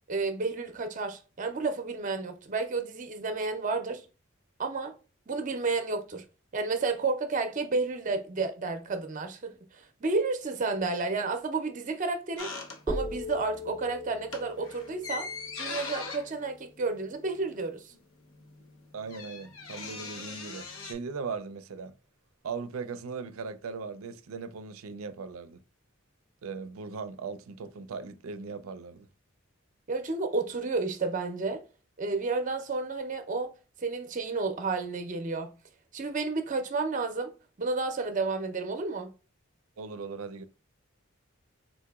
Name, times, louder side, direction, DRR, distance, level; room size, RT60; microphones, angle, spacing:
voice 1, 0.1-4.0 4.6-5.0 5.3-6.2 6.5-12.5 12.9-15.3 15.6-17.9 29.9-31.6 32.0-33.5 33.8-35.5 35.9-37.3 37.6-39.1, right 3 dB, 40° right, 0.5 m, -31 dB
sound 1, 12.4-13.3 13.6-13.8 14.2-17.7 17.9-18.0 18.2-20.9, left 4 dB, 85° left, 0.7 m, -40 dB
sound 2, 12.9-17.0, left 1 dB, 5° left, 0.4 m, -39 dB
voice 2, 18.9-21.9 22.4-25.6 26.4-29.1 39.8-40.4, right 5 dB, 90° right, 0.4 m, -39 dB
4.0 x 2.8 x 2.3 m
head